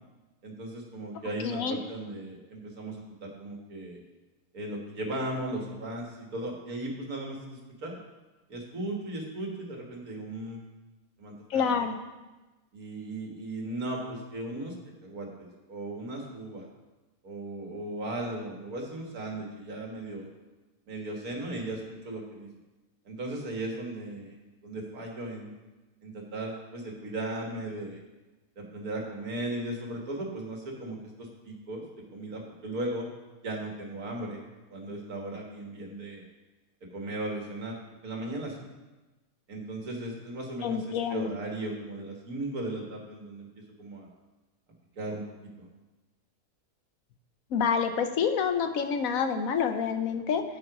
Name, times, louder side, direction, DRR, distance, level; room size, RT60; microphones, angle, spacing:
voice 1, 0.4-4.0 4.5-8.0 8.5-10.6 11.2-12.0 12.7-14.7 15.0-16.7 17.2-20.3 20.9-22.5 23.1-24.4 24.6-25.5 26.0-28.0 28.6-31.8 32.1-33.1 33.4-34.4 34.7-36.2 36.9-37.8 38.0-38.6 39.5-43.5 43.8-44.1 45.0-45.7, right 1 dB, 85° right, 0 dB, 2.3 m, -37 dB
voice 2, 1.4-1.8 11.5-11.9 40.6-41.3 47.5-50.4, left 6 dB, 75° left, 7 dB, 1.2 m, -27 dB
9.0 x 7.8 x 4.9 m, 1.1 s
omnidirectional pair, 1.5 m